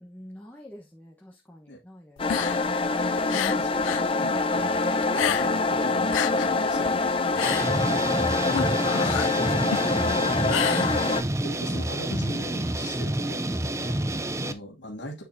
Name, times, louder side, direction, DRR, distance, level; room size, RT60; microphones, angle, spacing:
voice 1, 0.0-2.8 14.0-14.2, left 1 dB, 10° left, 1.1 m, -47 dB
sound 1, 2.2-4.1 4.4-5.7 6.0-11.4, left 10 dB, 90° left, 0.3 m, -31 dB
sound 2, 2.2-11.2, left 3 dB, 30° left, 0.7 m, -25 dB
voice 2, 3.3-8.1 9.1-11.1 11.4-14.0 14.4-15.2, equal, 75° left, 2.6 m, -40 dB
sound 3, 7.4-14.5, right 1 dB, 15° right, 0.6 m, -29 dB
9.2 x 6.6 x 2.8 m
head